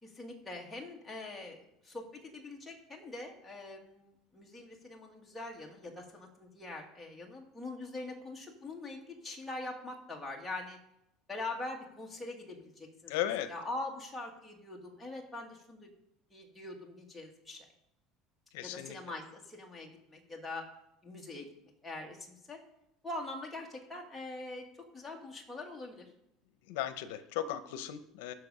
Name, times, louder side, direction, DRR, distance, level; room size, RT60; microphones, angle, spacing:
voice 1, 0.0-10.8 11.3-13.1 13.5-15.9 16.3-17.7 18.6-20.7 21.0-21.5 21.8-22.6 23.0-24.6 24.9-26.1, left 2 dB, 5° left, -1 dB, 1.7 m, -43 dB
voice 2, 13.1-13.5 18.5-19.0 26.7-28.3, left 11 dB, 85° left, 12 dB, 0.7 m, -36 dB
12.5 x 5.9 x 5.4 m, 0.82 s
cardioid pair, 155°, 0 cm